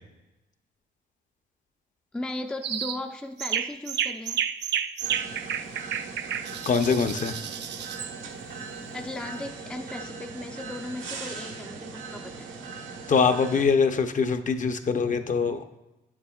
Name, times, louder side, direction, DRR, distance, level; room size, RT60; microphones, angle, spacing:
voice 1, 2.1-4.4 8.3-8.4 8.9-12.5, left 2 dB, 5° left, 5 dB, 0.4 m, -37 dB
sound 1, 2.6-3.0 3.4-8.1, right 8 dB, 60° right, 0.5 m, -31 dB
sound 2, 5.0-13.7, right 4 dB, 90° right, 1.1 m, -39 dB
voice 2, 6.7-7.4 13.1-15.6, left 5 dB, 40° left, 8 dB, 0.6 m, -23 dB
9.0 x 7.3 x 2.3 m, 1.0 s
cardioid pair, 90°, 20 cm